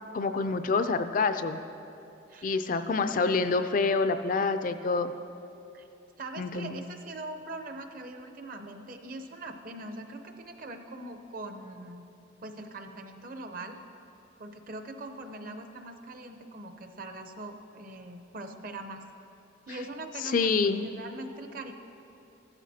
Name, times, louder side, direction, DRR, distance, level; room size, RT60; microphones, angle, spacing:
voice 1, 0.1-1.6 2.4-5.1 6.4-6.8 19.7-19.8 20.2-20.9, left 4 dB, 40° left, 9 dB, 0.3 m, -27 dB
voice 2, 6.2-12.0 12.4-13.8 14.4-19.0 19.7-21.7, right 2 dB, 45° right, 6 dB, 0.7 m, -42 dB
15.0 x 12.5 x 2.8 m, 2.9 s
head